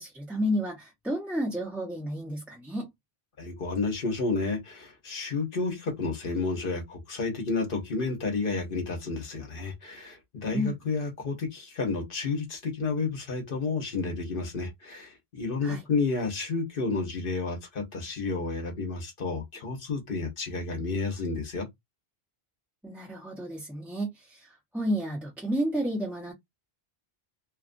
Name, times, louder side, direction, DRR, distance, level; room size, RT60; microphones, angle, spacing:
voice 1, 0.0-2.9 10.5-10.8 15.6-15.8 22.8-26.3, equal, ahead, 0.8 m, -31 dB
voice 2, 3.4-21.7, left 4 dB, 60° left, 1.1 m, -31 dB
2.7 x 2.4 x 2.5 m
omnidirectional pair, 1.1 m